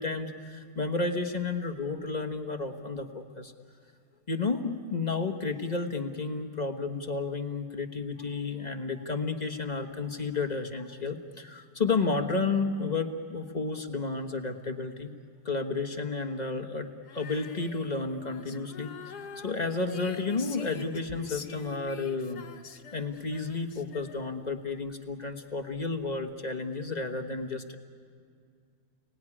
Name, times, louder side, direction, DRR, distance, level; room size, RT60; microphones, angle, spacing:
voice 1, 0.0-3.5 4.3-15.1 15.4-22.4 22.9-27.8, left 3 dB, 30° left, 5 dB, 1.3 m, -32 dB
Female singing, 17.0-24.5, left 6 dB, 75° left, 1.7 m, -45 dB
30.0 x 19.0 x 9.9 m, 2.2 s
omnidirectional pair, 1.7 m